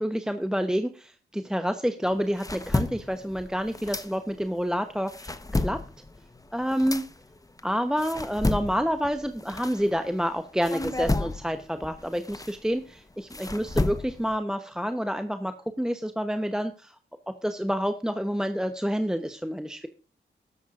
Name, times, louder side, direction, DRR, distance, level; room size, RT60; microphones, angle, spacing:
voice 1, 0.0-5.8 6.5-7.0 7.6-16.9 17.3-19.9, equal, 5° right, 8 dB, 0.9 m, -28 dB
sound 1, 2.0-4.6 4.9-10.2 10.6-14.4, left 2 dB, 20° left, 1.1 m, -32 dB
13.0 x 12.5 x 2.5 m, 0.37 s
cardioid pair, 55°, 20 cm